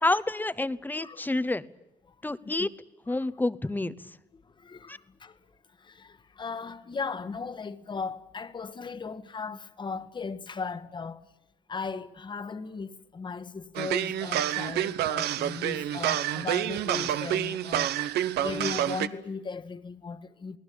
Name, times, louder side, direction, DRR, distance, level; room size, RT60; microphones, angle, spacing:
voice 1, 0.0-1.7 2.2-2.7 3.1-3.9 4.9-5.0, left 2 dB, 10° left, 1.0 m, -28 dB
voice 2, 4.3-5.4 5.8-11.3 11.7-18.0 18.4-20.6, left 4 dB, 25° left, 1.5 m, -37 dB
sound 1, 13.8-19.1, right 12 dB, 75° right, 1.1 m, -28 dB
29.0 x 19.0 x 8.6 m
cardioid pair, 110°, 17 cm